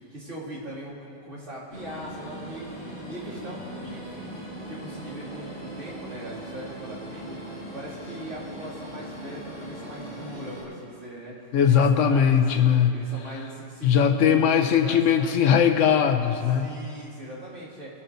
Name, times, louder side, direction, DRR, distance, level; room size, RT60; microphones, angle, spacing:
voice 1, 0.1-2.7 3.0-4.2 4.7-11.3 11.7-12.5 12.9-15.4 16.6-17.9, right 1 dB, 75° right, -8 dB, 2.8 m, -40 dB
sound 1, 1.7-10.6, right 1 dB, 5° left, 2.7 m, -39 dB
voice 2, 11.5-12.9 13.8-16.6, left 8 dB, 85° left, 6 dB, 1.1 m, -20 dB
20.5 x 8.6 x 2.7 m, 2.7 s
omnidirectional pair, 1.3 m